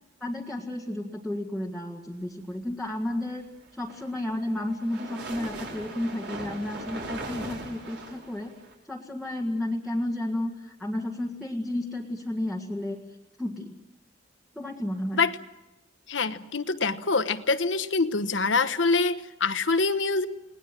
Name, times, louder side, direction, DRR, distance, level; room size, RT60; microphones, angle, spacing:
voice 1, 0.2-3.4 3.7-8.5 8.9-13.0 13.4-13.7 14.6-15.2, left 1 dB, ahead, -3 dB, 1.9 m, -32 dB
sound 1, 3.6-8.7, right 2 dB, 65° right, 5.3 m, -39 dB
voice 2, 16.1-20.3, left 4 dB, 70° left, 11 dB, 1.1 m, -25 dB
29.0 x 19.5 x 7.5 m, 1.0 s
head